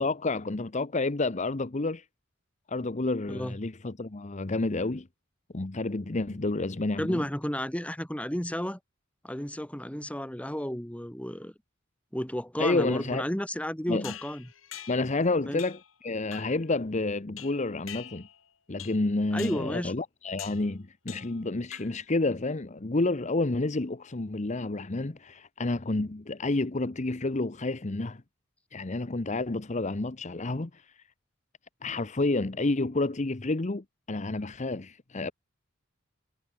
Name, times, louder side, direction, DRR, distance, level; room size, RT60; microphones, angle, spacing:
voice 1, 0.0-2.0 2.7-5.1 5.5-7.2 12.6-13.2 13.9-14.1 14.9-18.3 18.7-28.2 28.7-30.9 31.8-35.3, left 2 dB, 35° left, 0.9 m, -29 dB
voice 2, 7.0-8.8 9.2-11.5 12.1-14.5 15.5-15.6 19.3-19.9, equal, 5° left, 2.1 m, -32 dB
sound 1, 14.0-15.2 15.6-15.9 16.3-16.7 17.4-18.4 18.8-19.1 19.4-19.7 20.4-20.7 21.1-21.4 21.7-22.1, left 11 dB, 85° left, 3.0 m, -45 dB
head